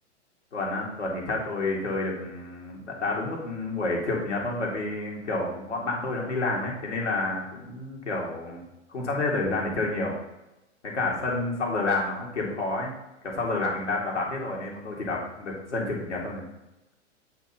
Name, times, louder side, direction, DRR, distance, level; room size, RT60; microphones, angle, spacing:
voice 1, 0.5-8.6 8.9-10.2 10.8-12.9 13.2-16.4, left 2 dB, 75° left, -2 dB, 1.8 m, -29 dB
7.9 x 2.9 x 5.3 m, 0.96 s
figure-of-eight pair, 95°, 36 cm